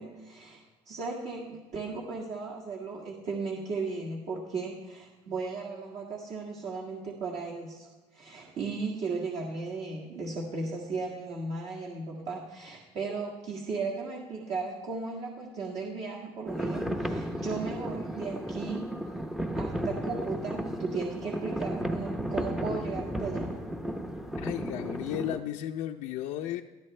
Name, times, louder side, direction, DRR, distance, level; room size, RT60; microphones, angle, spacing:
voice 1, 0.0-18.9 19.6-23.5, right 4 dB, 55° right, -2 dB, 1.8 m, -36 dB
sound 1, 16.5-25.4, equal, 5° right, 0.7 m, -34 dB
voice 2, 24.4-26.6, left 11 dB, 75° left, 3 dB, 0.6 m, -34 dB
20.0 x 13.0 x 3.3 m, 1.2 s
cardioid pair, 155°, 13 cm